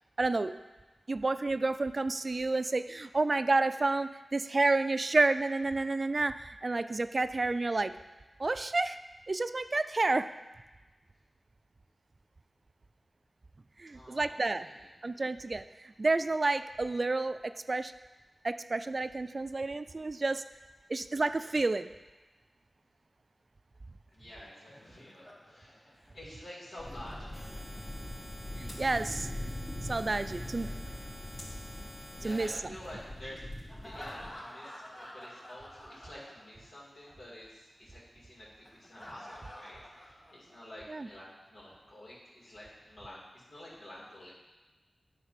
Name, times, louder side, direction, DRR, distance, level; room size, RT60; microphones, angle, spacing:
voice 1, 0.2-0.5 1.1-7.9 8.4-9.0 9.3-10.3 13.8-14.7 15.0-15.6 16.0-17.4 17.7-17.9 18.4-20.4 20.9-21.9 28.6-29.3 29.9-30.7 32.2-32.5 40.9-41.1, right 3 dB, 50° right, 12 dB, 0.3 m, -30 dB
voice 2, 13.9-14.9 24.1-27.4 31.2-31.4 32.2-33.4 33.8-44.3, left 1 dB, 85° left, -7 dB, 2.5 m, -49 dB
Laughter, 24.1-28.2 29.8-32.0 33.7-36.8 37.0-37.2 38.7-40.8, equal, 20° left, 2.0 m, -51 dB
sound 1, 26.8-34.3, left 1 dB, 65° left, 2.4 m, -42 dB
sound 2, 27.3-32.5, left 1 dB, 45° left, 1.1 m, -49 dB
9.3 x 3.4 x 5.7 m, 1.2 s
cardioid pair, 45°, 0 cm